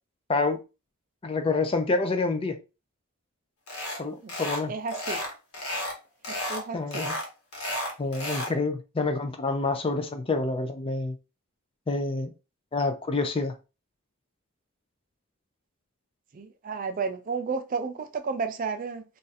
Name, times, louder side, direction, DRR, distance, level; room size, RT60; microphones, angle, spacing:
voice 1, 0.3-0.6 1.2-2.6 4.0-4.7 6.7-7.1 8.0-11.2 11.9-12.3 12.7-13.5, left 3 dB, 25° left, 0.4 m, -27 dB
sound 1, 3.7-4.0 4.3-4.6 4.9-6.0 6.2-6.6 6.9-8.5, left 1 dB, 85° left, 1.1 m, -32 dB
voice 2, 4.7-5.2 6.3-7.0 16.3-19.0, right 5 dB, 40° right, 0.4 m, -32 dB
2.6 x 2.4 x 3.9 m
head